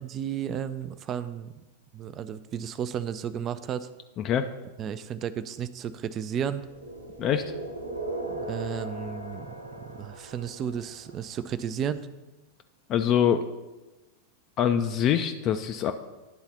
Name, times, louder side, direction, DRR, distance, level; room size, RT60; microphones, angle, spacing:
voice 1, 0.0-1.5 1.9-3.9 4.8-6.6 8.3-9.5 9.8-12.0, right 8 dB, 30° right, 13 dB, 0.4 m, -33 dB
sound 1, 6.5-11.5, right 1 dB, 85° right, 1.0 m, -38 dB
voice 2, 12.9-13.5 14.6-15.9, left 9 dB, 35° left, 7 dB, 0.4 m, -24 dB
11.0 x 3.9 x 5.6 m, 1.1 s
figure-of-eight pair, 90°, 0 cm